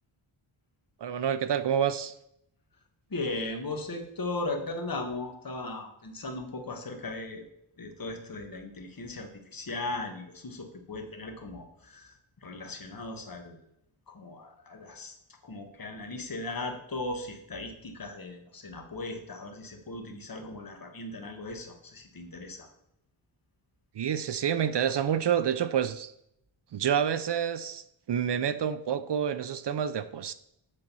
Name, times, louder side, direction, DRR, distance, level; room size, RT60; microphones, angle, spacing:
voice 1, 1.0-2.1 23.9-26.1 26.7-30.3, right 8 dB, 55° right, 13 dB, 0.5 m, -28 dB
voice 2, 3.1-7.4 7.8-13.6 14.1-15.1 15.4-22.7, left 2 dB, 45° left, 4 dB, 1.5 m, -37 dB
8.5 x 3.9 x 6.8 m, 0.76 s
wide cardioid pair, 135°, 50 cm